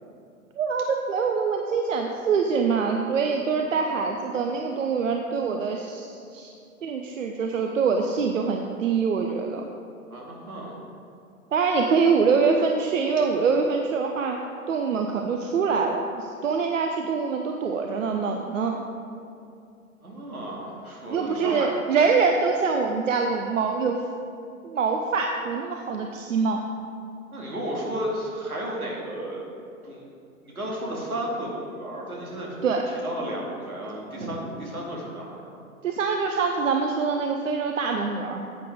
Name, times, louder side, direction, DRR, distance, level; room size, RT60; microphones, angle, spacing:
voice 1, 0.6-6.5 6.8-9.7 11.5-14.4 14.7-18.8 21.1-24.0 24.6-26.6 32.6-32.9 35.8-38.5, right 5 dB, 60° right, 3 dB, 0.8 m, -24 dB
voice 2, 10.1-10.8 20.0-21.7 27.3-29.4 29.8-30.0 30.4-32.6 33.0-35.6, right 1 dB, 80° right, -3 dB, 2.4 m, -33 dB
10.0 x 8.4 x 3.5 m, 2.6 s
figure-of-eight pair, 105°, 43 cm